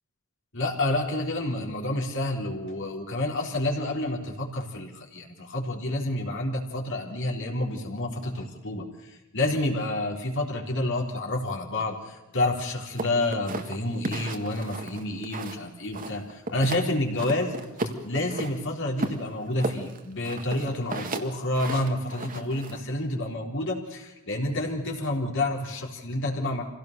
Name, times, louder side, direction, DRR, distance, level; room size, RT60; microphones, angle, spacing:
voice 1, 0.5-17.6 18.0-26.6, left 1 dB, 60° left, 1 dB, 3.8 m, -29 dB
sound 1, 13.0-15.7 15.9-16.9 17.2-18.5 19.0-22.8, right 2 dB, 40° right, 1.8 m, -34 dB
25.5 x 17.0 x 6.7 m, 1.0 s
head